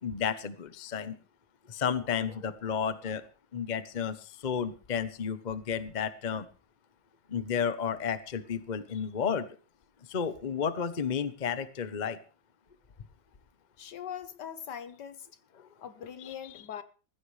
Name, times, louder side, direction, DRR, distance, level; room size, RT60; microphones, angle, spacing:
voice 1, 0.0-1.2 1.7-3.2 3.5-6.5 7.3-9.5 10.1-12.2 15.6-15.7 16.2-16.3, left 7 dB, 35° left, 0.7 m, -32 dB
voice 2, 13.8-15.3 15.8-16.8, left 8 dB, 65° left, 1.6 m, -41 dB
20.0 x 15.0 x 3.3 m
omnidirectional pair, 2.0 m